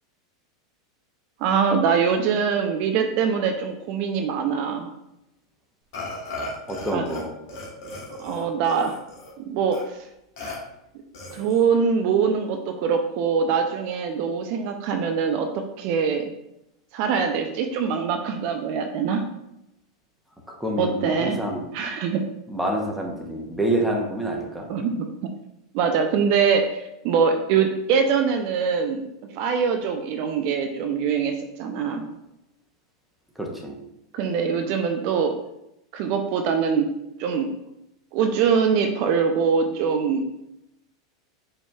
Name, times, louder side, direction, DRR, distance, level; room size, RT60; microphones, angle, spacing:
voice 1, 1.4-4.9 6.9-7.0 8.2-9.0 9.4-10.1 11.3-16.3 16.9-19.2 20.8-21.4 21.7-22.2 24.7-25.3 25.7-29.1 29.3-32.1 34.1-35.3 35.9-36.9 37.2-37.5 38.1-40.3, right 6 dB, 50° right, 5 dB, 0.3 m, -23 dB
Burping eructation, 5.9-7.2 7.5-9.3 9.7-9.8 10.4-10.6 11.1-11.7, left 2 dB, 60° left, 1.1 m, -36 dB
voice 2, 6.7-7.3 20.5-21.7 22.5-24.7 33.4-33.7, right 1 dB, ahead, -1 dB, 0.8 m, -27 dB
4.3 x 2.9 x 2.3 m, 0.86 s
hypercardioid pair, 90°, 2 cm